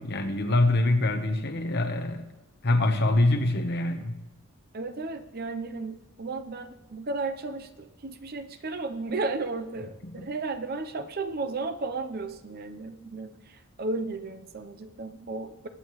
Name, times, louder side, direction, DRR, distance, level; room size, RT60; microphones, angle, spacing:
voice 1, 0.0-2.3 2.6-4.2 10.2-10.3, left 2 dB, 50° left, 6 dB, 1.1 m, -24 dB
voice 2, 4.7-15.7, right 3 dB, 45° right, 9 dB, 0.7 m, -34 dB
21.5 x 8.6 x 3.2 m, 1.1 s
head